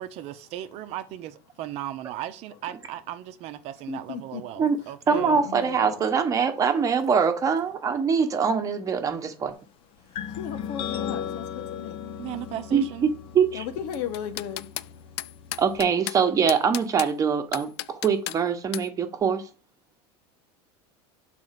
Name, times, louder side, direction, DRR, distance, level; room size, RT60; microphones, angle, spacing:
voice 1, 0.0-5.4 12.2-13.1, right 13 dB, 50° right, 0.8 m, -37 dB
voice 2, 3.9-6.1 6.8-6.9 7.7-7.8 9.4-9.6 10.0-12.3 13.5-15.2, left 9 dB, 65° left, 1.3 m, -37 dB
voice 3, 5.1-9.5 12.7-13.1 13.3-13.6 15.6-19.4, right 6 dB, 25° right, 1.2 m, -23 dB
sound 1, 10.1-15.8, left 9 dB, 40° left, 0.7 m, -37 dB
sound 2, 13.9-14.9 15.2-16.2 16.5-17.1 17.5-18.4 18.7-18.9, left 16 dB, 85° left, 0.4 m, -33 dB
7.8 x 4.2 x 5.9 m
supercardioid pair, 145°, 14 cm